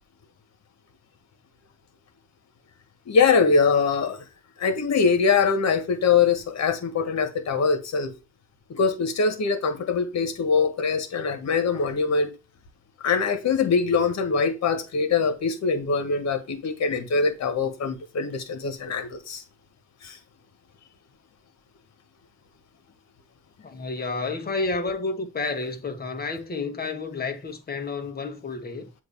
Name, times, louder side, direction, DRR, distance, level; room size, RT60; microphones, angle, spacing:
voice 1, 3.0-4.2 4.6-8.1 8.7-12.3 13.0-19.4 20.0-20.2, left 5 dB, 60° left, 1.6 m, -23 dB
voice 2, 23.6-28.9, left 3 dB, 30° left, 1.3 m, -30 dB
7.9 x 2.9 x 5.5 m
cardioid pair, 90°, 30 cm